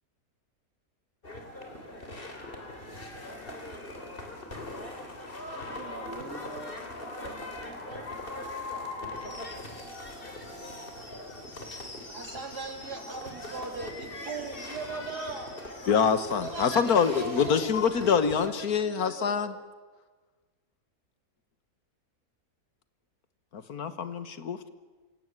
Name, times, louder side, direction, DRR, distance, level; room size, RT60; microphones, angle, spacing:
sound 1, 1.2-18.5, left 2 dB, 35° left, 3.4 m, -41 dB
voice 1, 5.5-6.8 7.2-8.1, right 2 dB, 50° right, 5 dB, 3.3 m, -45 dB
voice 2, 12.1-15.6 16.4-19.4, right 3 dB, 90° right, 5 dB, 3.6 m, -39 dB
voice 3, 15.9-19.5 23.5-24.7, left 6 dB, 70° left, 12 dB, 1.8 m, -25 dB
27.0 x 17.5 x 9.5 m, 1.4 s
omnidirectional pair, 1.7 m